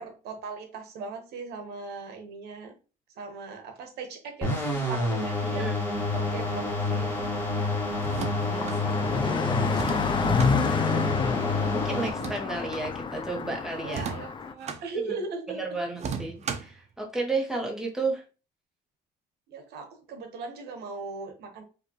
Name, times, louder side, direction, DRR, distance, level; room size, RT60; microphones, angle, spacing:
voice 1, 0.0-2.8 3.2-5.7 6.1-7.3 10.8-11.4 13.8-15.6 19.5-21.6, right 4 dB, 75° right, 4 dB, 1.0 m, -39 dB
sound 1, 4.4-12.1, left 2 dB, 10° left, 1.4 m, -29 dB
voice 2, 5.5-6.0 8.4-10.1 10.8-11.0 11.2-11.3 11.7-14.0 15.0-15.1 15.5-18.2, right 3 dB, 5° right, 0 dB, 1.1 m, -33 dB
Car passing by, 5.9-14.5, left 5 dB, 30° left, 0.4 m, -30 dB
sound 2, 8.0-8.8 9.7-10.5 12.0-12.9 13.9-14.8 16.0-16.8, right 6 dB, 40° right, 0.6 m, -35 dB
5.1 x 2.6 x 2.9 m, 0.33 s
cardioid pair, 110°, 17 cm